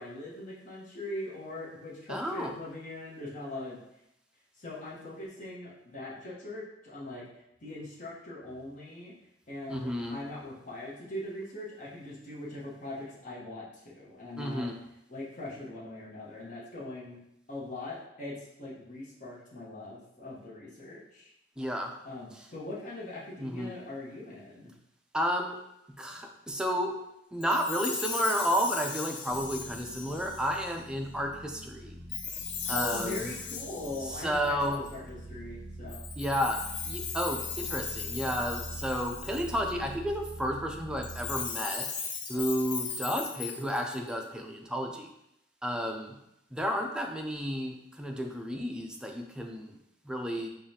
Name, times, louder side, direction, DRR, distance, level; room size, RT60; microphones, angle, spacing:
voice 1, 0.0-3.8 4.6-7.3 7.6-9.1 9.5-14.7 15.1-17.2 17.5-21.3 22.0-24.7 32.6-36.0, left 2 dB, 45° left, -6 dB, 1.0 m, -41 dB
voice 2, 2.1-2.6 9.7-10.2 14.4-14.7 21.6-21.9 23.4-23.7 25.1-25.6 26.0-27.0 27.3-32.0 32.7-33.3 34.1-34.8 36.2-36.6 36.8-41.9 42.3-45.1 45.6-46.2 46.5-49.8 50.0-50.5, equal, 5° right, 2 dB, 0.4 m, -32 dB
Chime, 27.4-30.7 32.1-34.9 35.9-39.7 41.0-44.1, left 6 dB, 70° left, 0.5 m, -37 dB
sound 1, 29.3-41.5, right 1 dB, 40° right, 0.9 m, -45 dB
4.8 x 2.4 x 2.8 m, 0.83 s
head